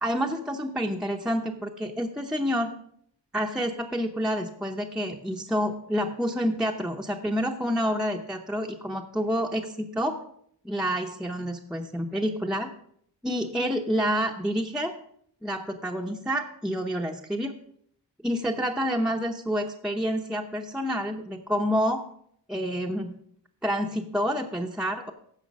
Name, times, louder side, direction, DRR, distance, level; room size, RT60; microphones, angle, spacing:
voice 1, 0.0-2.7 3.3-10.2 10.6-12.7 13.2-14.9 15.4-17.5 18.2-22.0 22.5-23.2 23.6-25.1, equal, ahead, 1 dB, 0.6 m, -28 dB
15.0 x 5.6 x 5.3 m, 0.67 s
wide cardioid pair, 140°, 44 cm